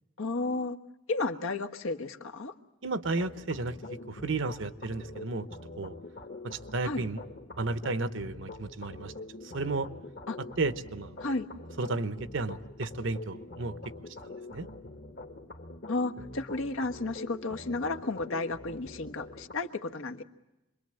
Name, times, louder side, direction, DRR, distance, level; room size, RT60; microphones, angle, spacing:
voice 1, 0.2-0.8 1.1-2.5 6.8-7.1 10.3-10.4 11.2-11.5 15.9-20.2, left 3 dB, 75° left, 6 dB, 1.3 m, -33 dB
voice 2, 2.8-3.7 4.1-5.5 5.8-5.9 6.4-7.2 7.6-9.1 9.5-9.9 10.6-11.2 11.8-13.8 14.5-14.7, right 3 dB, 65° right, 12 dB, 0.9 m, -33 dB
sound 1, 3.0-19.5, left 2 dB, 55° left, 1.7 m, -45 dB
26.5 x 22.5 x 7.7 m, 0.97 s
head